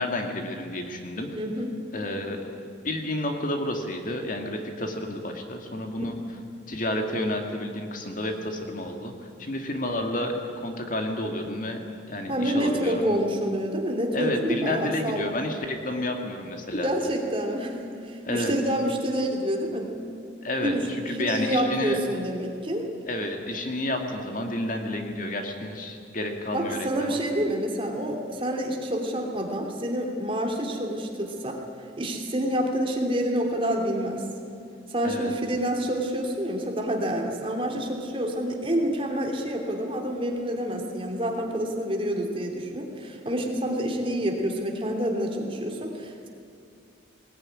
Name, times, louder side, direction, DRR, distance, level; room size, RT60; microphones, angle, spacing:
voice 1, 0.0-1.3 1.9-2.4 2.8-6.2 6.7-9.1 9.4-13.2 14.1-16.9 18.2-18.5 20.4-22.0 23.1-27.2 35.0-35.3, left 1 dB, 45° left, 4 dB, 2.2 m, -30 dB
voice 2, 1.3-1.7 6.0-6.1 12.3-15.2 16.8-17.8 18.0-19.9 20.6-22.9 26.5-31.6 32.0-34.2 34.9-46.3, equal, 30° right, 2 dB, 2.9 m, -28 dB
20.0 x 19.5 x 9.9 m, 2.4 s
head